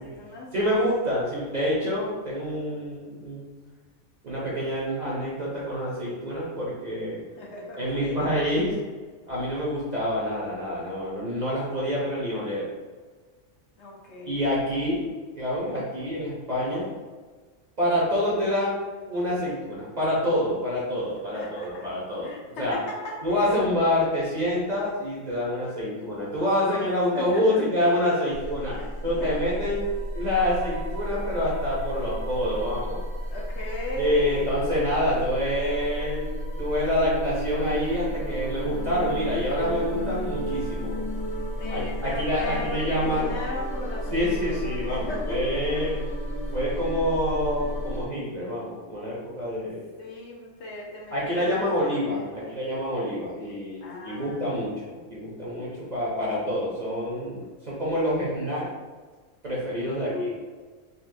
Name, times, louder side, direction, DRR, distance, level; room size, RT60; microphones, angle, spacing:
voice 1, 0.0-1.1 7.4-8.3 13.8-14.5 21.3-21.9 22.2-23.8 26.7-26.8 27.1-27.7 28.7-28.9 29.2-29.4 33.3-34.5 41.6-46.1 46.8-47.1 49.6-49.7 50.0-52.6 53.8-54.7 59.8-60.5, left 2 dB, 65° left, -2 dB, 0.8 m, -38 dB
voice 2, 0.5-3.5 4.2-7.3 7.8-8.7 9.3-12.7 14.3-15.1 15.4-16.9 17.8-18.8 19.1-22.3 22.6-22.8 23.2-28.8 29.0-29.9 30.1-33.0 34.0-40.9 41.7-43.3 44.1-45.9 46.5-49.8 51.1-58.7 59.4-60.1, left 1 dB, 45° right, -6 dB, 0.6 m, -27 dB
sound 1, 28.3-48.0, equal, 30° left, 0.6 m, -32 dB
4.0 x 2.1 x 2.6 m, 1.4 s
omnidirectional pair, 1.4 m